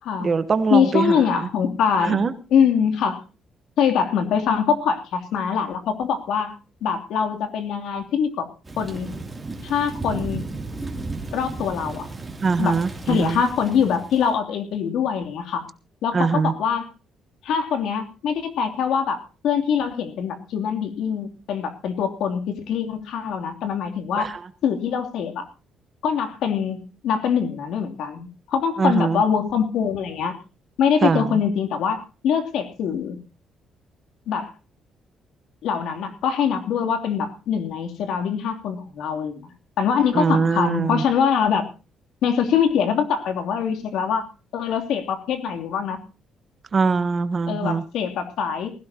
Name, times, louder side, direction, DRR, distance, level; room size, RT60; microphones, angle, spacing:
voice 1, 0.2-1.5 2.0-2.3 12.4-13.4 16.1-16.5 24.2-24.4 28.8-29.2 31.0-31.4 40.1-41.0 46.7-47.8, right 5 dB, 25° right, 11 dB, 1.2 m, -22 dB
voice 2, 0.7-3.2 3.8-6.5 6.8-8.5 8.8-9.2 9.6-10.5 11.3-12.1 12.6-12.8 13.1-15.7 16.0-16.9 17.4-24.3 24.6-25.5 26.0-30.4 30.8-33.2 34.3-34.5 35.6-39.5 39.8-41.7 42.2-44.3 44.5-46.0 47.5-48.7, left 7 dB, 70° left, 5 dB, 3.0 m, -23 dB
Thunder / Rain, 8.6-14.4, right 3 dB, 10° right, 2.9 m, -34 dB
20.0 x 16.5 x 2.9 m, 0.33 s
cardioid pair, 170°, 0 cm